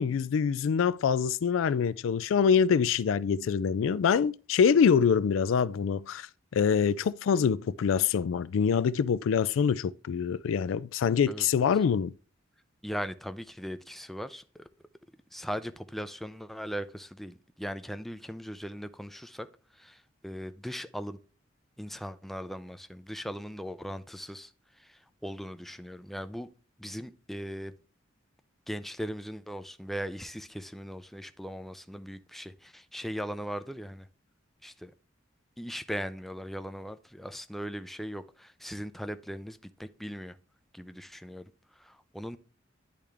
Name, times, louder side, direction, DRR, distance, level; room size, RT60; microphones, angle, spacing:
voice 1, 0.0-6.3 6.5-12.1, left 6 dB, 90° left, 0.3 m, -25 dB
voice 2, 12.8-14.7 15.3-19.5 19.7-21.2 21.8-26.5 26.8-27.7 28.7-34.1 34.6-34.9 35.6-40.4 40.7-41.5 41.8-42.4, equal, ahead, 0.4 m, -39 dB
10.0 x 3.5 x 3.3 m
head